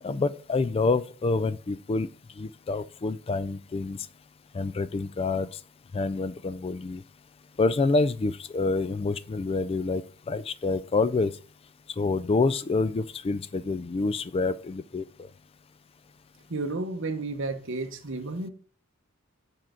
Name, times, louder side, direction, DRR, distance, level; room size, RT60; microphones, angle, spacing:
voice 1, 0.0-2.1 2.4-4.1 4.5-5.6 5.9-7.0 7.6-11.3 11.9-15.3, left 3 dB, 25° left, 0.3 m, -27 dB
voice 2, 16.5-18.5, right 3 dB, 60° right, 0.9 m, -32 dB
7.5 x 4.5 x 3.7 m
head